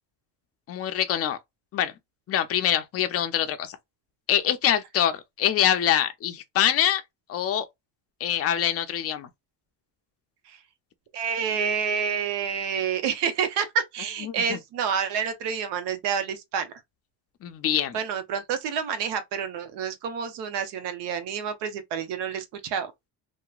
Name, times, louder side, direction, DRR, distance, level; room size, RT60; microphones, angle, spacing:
voice 1, 0.7-1.4 1.7-1.9 2.3-3.8 4.3-7.0 7.3-7.7 8.2-9.3 14.2-14.6 17.4-18.0, left 10 dB, 35° left, 0.5 m, -24 dB
voice 2, 11.1-16.7 17.9-22.9, right 7 dB, 65° right, 0.8 m, -28 dB
2.9 x 2.1 x 2.3 m
cardioid pair, 105°, 44 cm